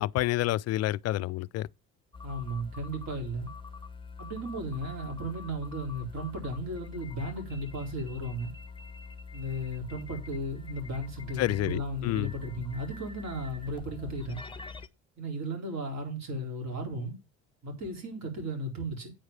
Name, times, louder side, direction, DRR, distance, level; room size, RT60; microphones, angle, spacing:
voice 1, 0.0-1.7 11.4-12.3, left 15 dB, 50° left, 0.4 m, -29 dB
Lots of Morse Code, 2.1-14.9, left 4 dB, 15° left, 0.9 m, -44 dB
voice 2, 2.2-3.5 4.2-8.5 9.3-14.4 15.2-17.2 17.6-19.1, right 1 dB, 50° right, 4.1 m, -35 dB
8.8 x 4.7 x 6.8 m
hypercardioid pair, 65°, 35 cm